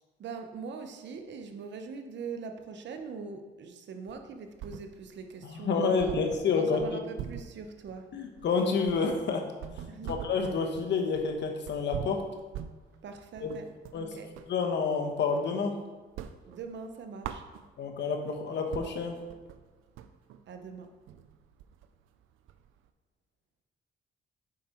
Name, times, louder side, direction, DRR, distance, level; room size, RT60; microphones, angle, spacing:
voice 1, 0.2-6.1 6.5-8.1 9.9-10.1 13.0-14.3 16.5-17.4 20.5-20.9, right 5 dB, 65° right, 6 dB, 0.9 m, -42 dB
sound 1, 4.1-5.2 5.6-5.7 6.0-14.6 15.0-15.7 16.0-18.0 18.4-18.5 18.7-22.9, right 9 dB, 90° right, 0.5 m, -43 dB
voice 2, 5.4-7.0 8.1-9.5 10.0-12.2 13.4-13.5 13.9-14.2 14.5-15.8 17.8-19.2, left 4 dB, 65° left, 4 dB, 1.1 m, -29 dB
7.5 x 4.9 x 4.4 m, 1.3 s
cardioid pair, 90°, 20 cm